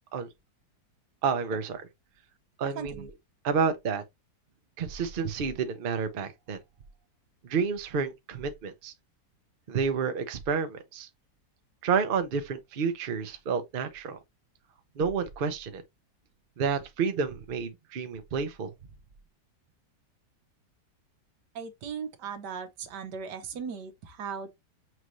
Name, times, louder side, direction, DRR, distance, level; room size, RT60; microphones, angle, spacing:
voice 1, 1.2-1.9 2.6-3.1 3.4-4.0 4.8-6.6 7.5-8.9 9.7-11.1 11.8-14.2 15.0-15.8 16.6-18.7, right 6 dB, 50° right, 0.7 m, -30 dB
voice 2, 2.6-3.1 21.5-24.5, right 6 dB, 85° right, 1.5 m, -38 dB
5.9 x 2.6 x 3.0 m
omnidirectional pair, 1.8 m